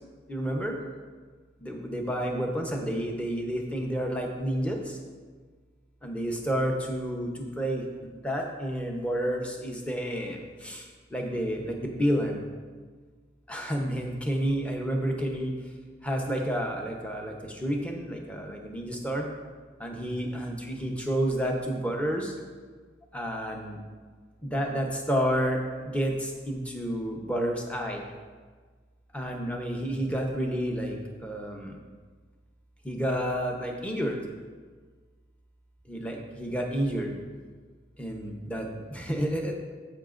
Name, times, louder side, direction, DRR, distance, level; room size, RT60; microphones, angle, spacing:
voice 1, 0.3-0.8 1.6-5.0 6.0-12.5 13.5-15.5 16.0-19.3 19.8-22.3 23.1-23.8 24.4-28.0 29.1-31.7 32.8-34.2 35.9-37.1 38.0-39.5, equal, 5° left, 0 dB, 0.9 m, -30 dB
15.0 x 5.7 x 2.6 m, 1.5 s
head